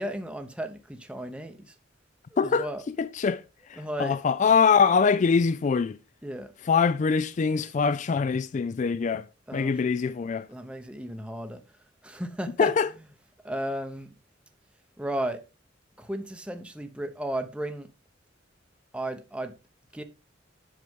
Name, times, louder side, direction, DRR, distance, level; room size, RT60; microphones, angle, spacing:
voice 1, 0.0-1.8 2.3-2.8 3.8-4.2 6.2-6.5 9.5-9.8 10.5-11.6 12.0-12.7 13.4-14.2 15.0-15.4 16.0-17.9 18.9-19.6 19.9-20.0, right 1 dB, 5° right, 0.7 m, -34 dB
voice 2, 2.4-3.4 3.7-6.0 6.7-9.3 9.5-10.5 12.6-12.9, left 5 dB, 40° left, 0.3 m, -23 dB
7.8 x 6.6 x 3.5 m
head